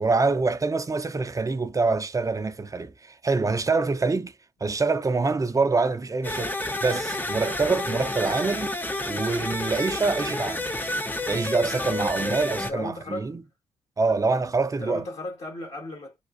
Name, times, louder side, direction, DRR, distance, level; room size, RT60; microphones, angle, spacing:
voice 1, 0.0-4.3 4.6-8.8 9.1-10.8 11.3-13.4 14.0-15.0, right 3 dB, 25° right, 0.7 m, -25 dB
sound 1, 6.2-12.7, left 1 dB, 15° left, 0.7 m, -30 dB
voice 2, 12.6-13.3 14.1-14.3 14.8-16.2, left 1 dB, 60° left, 1.6 m, -35 dB
3.5 x 2.4 x 2.6 m
hypercardioid pair, 40°, 12 cm